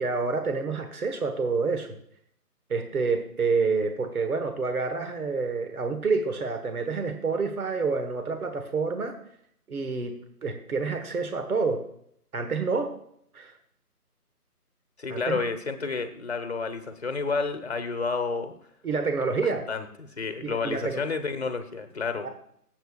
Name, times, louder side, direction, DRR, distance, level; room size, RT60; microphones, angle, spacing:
voice 1, 0.0-1.9 2.7-9.1 9.7-10.1 10.4-11.8 12.3-12.9 13.3-13.5 15.1-15.4 18.8-19.6 20.4-21.0 22.2-22.3, right 4 dB, 65° right, 6 dB, 1.4 m, -28 dB
voice 2, 15.0-18.5 19.4-22.3, left 4 dB, 45° left, 8 dB, 1.0 m, -30 dB
19.0 x 8.0 x 2.4 m, 0.69 s
figure-of-eight pair, 180°, 47 cm